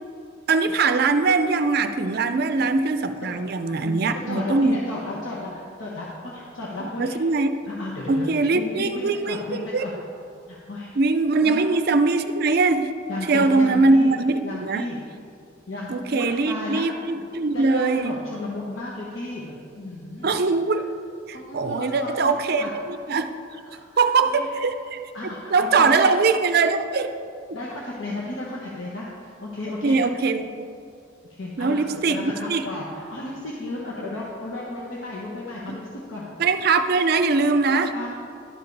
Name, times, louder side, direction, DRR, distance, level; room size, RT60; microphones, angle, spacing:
voice 1, 0.5-4.8 6.8-7.7 8.1-10.0 11.0-12.9 13.3-14.8 15.9-18.2 20.2-20.9 21.3-22.6 23.1-23.3 24.0-27.1 29.8-30.7 31.6-32.6 36.4-37.9, right 3 dB, 50° right, 9 dB, 0.4 m, -22 dB
voice 2, 2.2-2.7 3.2-3.4 3.6-7.2 7.7-9.9 10.5-10.9 11.4-11.7 13.1-14.1 14.4-15.0 15.7-17.2 17.5-20.3 20.7-20.8 21.3-22.2 22.5-22.7 23.7-24.4 25.1-26.1 27.5-30.0 31.2-35.8 36.1-36.3 37.7-38.1, left 2 dB, 70° left, -5 dB, 1.1 m, -34 dB
11.5 x 4.9 x 4.7 m, 2.4 s
head